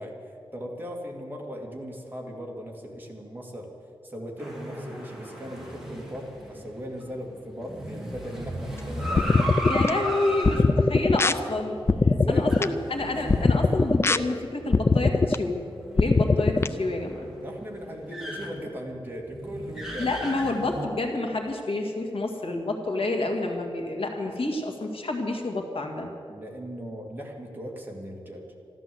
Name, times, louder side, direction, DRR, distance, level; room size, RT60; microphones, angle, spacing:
voice 1, 0.0-3.7 4.0-9.3 12.0-12.7 17.4-20.2 26.3-28.4, equal, 20° right, 0 dB, 2.2 m, -38 dB
sound 1, 4.4-14.3 14.7-14.8 15.3-20.8, equal, 5° right, 2.6 m, -36 dB
sound 2, 9.2-9.9 10.4-11.3 11.9-12.6 13.3-14.2 14.7-15.4 16.0-16.7, left 3 dB, 25° left, 0.4 m, -21 dB
voice 2, 9.7-11.8 12.3-15.6 15.9-17.3 20.0-26.1, left 2 dB, 75° left, 2 dB, 2.0 m, -29 dB
13.5 x 13.0 x 7.7 m, 2.6 s
wide cardioid pair, 140°, 10 cm